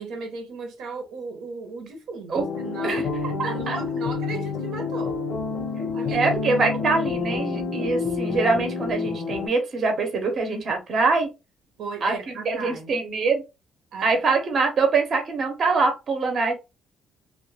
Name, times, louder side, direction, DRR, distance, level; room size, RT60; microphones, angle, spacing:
voice 1, 0.0-3.1 3.4-5.2 5.9-7.0 11.8-12.9 13.9-14.1, right 4 dB, 80° right, 0.8 m, -36 dB
sound 1, 2.3-9.5, left 4 dB, 65° left, 0.8 m, -28 dB
voice 2, 2.8-3.8 6.1-11.3 12.0-13.4 14.0-16.5, right 4 dB, 45° right, 0.8 m, -24 dB
2.3 x 2.1 x 3.1 m
cardioid pair, 110°, 0 cm